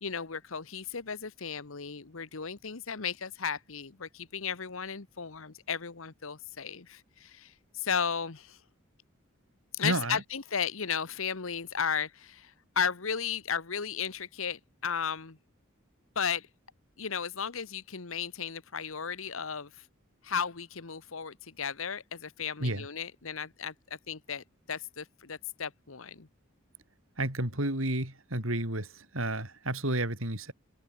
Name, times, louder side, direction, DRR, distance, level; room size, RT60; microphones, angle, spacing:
voice 1, 0.0-8.6 9.7-15.4 16.1-16.5 17.0-19.8 20.2-26.3, left 7 dB, 75° left, 1.2 m, -35 dB
voice 2, 9.8-10.2 22.6-22.9 27.2-30.5, right 1 dB, 75° right, 7.0 m, -31 dB
head